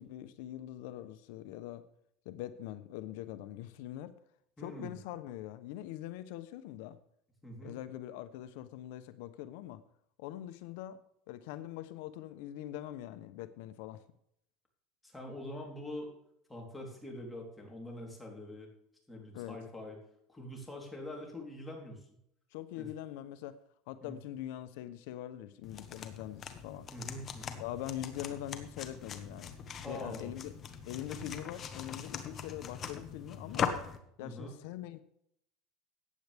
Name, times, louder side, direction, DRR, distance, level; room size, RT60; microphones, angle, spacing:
voice 1, 0.0-1.8 2.2-4.1 4.6-7.0 7.6-9.8 10.2-11.0 11.3-14.0 19.3-19.6 22.5-23.6 23.9-26.9 27.6-29.5 29.9-30.6 30.9-33.7 34.2-35.0, left 13 dB, 75° left, 12 dB, 0.8 m, -43 dB
voice 2, 4.6-4.9 7.4-7.8 15.0-16.1 16.5-18.7 19.1-20.0 20.3-22.0 22.8-22.9 24.0-24.2 26.9-27.6 29.8-30.3 31.1-31.2 34.2-34.5, left 1 dB, 5° left, -1 dB, 3.6 m, -44 dB
sound 1, 25.6-34.0, left 7 dB, 35° left, 1.3 m, -41 dB
14.5 x 9.5 x 3.5 m, 0.72 s
supercardioid pair, 135°, 0 cm